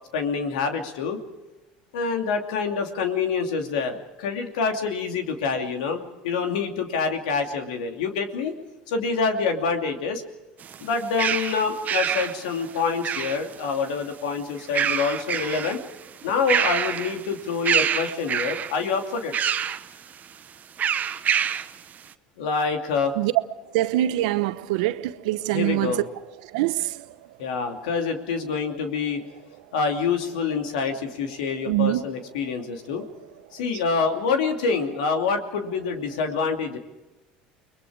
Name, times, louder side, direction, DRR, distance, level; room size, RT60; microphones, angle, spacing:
voice 1, 0.1-1.2 1.9-8.5 8.9-10.2 10.8-15.8 16.2-19.3 22.4-23.1 25.5-26.0 27.4-29.2 29.7-33.0 33.5-36.8, left 5 dB, 85° left, 2.7 m, -26 dB
sound 1, 10.6-13.7 14.6-15.8 16.2-17.3 17.6-18.8 19.3-19.9 20.8-21.7, right 8 dB, 40° right, 1.1 m, -26 dB
voice 2, 23.7-26.0 26.5-26.9 31.7-32.0, right 15 dB, 80° right, 0.9 m, -24 dB
30.0 x 21.5 x 4.9 m
hypercardioid pair, 80°, 4 cm